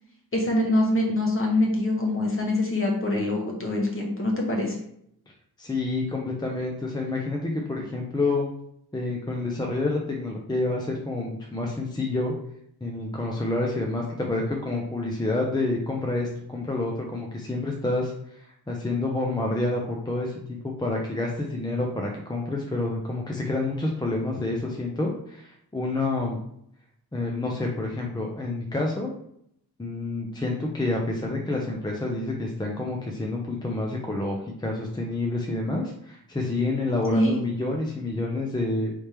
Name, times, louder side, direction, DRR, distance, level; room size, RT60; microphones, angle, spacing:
voice 1, 0.3-4.7 37.1-37.4, left 1 dB, 35° left, -1 dB, 1.1 m, -24 dB
voice 2, 5.6-8.5 8.9-12.3 12.8-26.4 27.1-29.1 29.8-38.9, left 2 dB, 10° left, -1 dB, 0.5 m, -28 dB
3.4 x 3.3 x 4.3 m, 0.71 s
wide cardioid pair, 175°, 39 cm